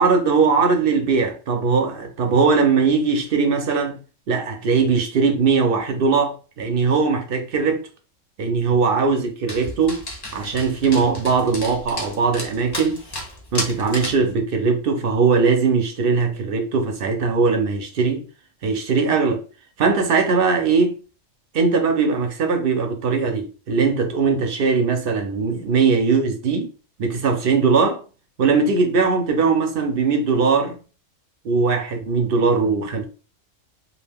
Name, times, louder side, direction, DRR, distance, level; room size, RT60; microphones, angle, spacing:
voice 1, 0.0-4.0 4.3-7.8 8.4-10.0 10.3-13.0 13.5-18.2 18.6-19.4 19.8-20.9 21.5-26.7 27.0-28.0 28.4-30.8 31.4-33.0, right 4 dB, 60° right, 0.6 m, -20 dB
Dog, 9.5-14.3, left 1 dB, 25° left, 0.5 m, -33 dB
2.4 x 2.2 x 3.4 m
omnidirectional pair, 1.3 m